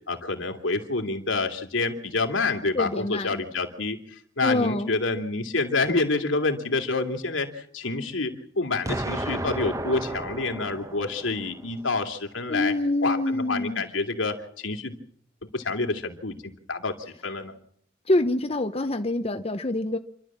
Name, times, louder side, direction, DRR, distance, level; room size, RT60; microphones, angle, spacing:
voice 1, 0.1-12.7 13.0-15.0 15.5-16.4 16.7-16.9 17.2-17.5, left 3 dB, 80° left, 4 dB, 2.9 m, -28 dB
voice 2, 2.7-3.4 4.4-4.9 12.5-13.8 18.1-20.0, left 2 dB, 30° left, 7 dB, 0.9 m, -25 dB
Explosion, 8.9-11.8, right 1 dB, 15° right, 1.2 m, -33 dB
28.5 x 12.5 x 7.5 m, 0.64 s
head